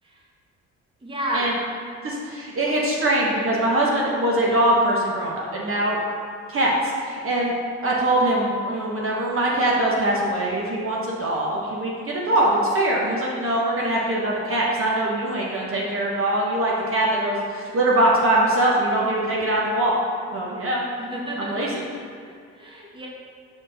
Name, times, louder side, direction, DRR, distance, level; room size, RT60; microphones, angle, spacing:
voice 1, 1.0-1.5 20.9-21.7 22.5-23.1, right 1 dB, 15° right, -3 dB, 1.2 m, -30 dB
voice 2, 2.0-6.0 6.5-7.5 7.8-20.0 20.3-20.8 21.4-21.7, right 1 dB, 45° right, -4 dB, 1.1 m, -22 dB
5.9 x 4.6 x 4.0 m, 2.2 s
cardioid pair, 90°, 30 cm